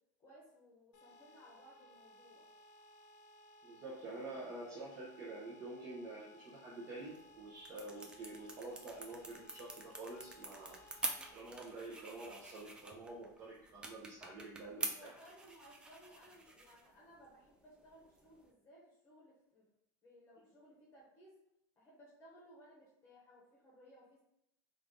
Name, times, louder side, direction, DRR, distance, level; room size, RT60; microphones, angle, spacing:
voice 1, 0.2-2.5 14.7-19.7 20.0-21.4 21.8-24.2, equal, 25° left, -5 dB, 0.9 m, -61 dB
sound 1, 0.9-11.3, equal, 75° left, 0.6 m, -61 dB
voice 2, 3.6-10.8 11.3-15.1, right 2 dB, 35° right, -6 dB, 0.7 m, -48 dB
sound 2, 7.0-18.5, right 2 dB, 10° right, 0.4 m, -47 dB
3.3 x 2.5 x 3.6 m, 0.78 s
supercardioid pair, 160°, 9 cm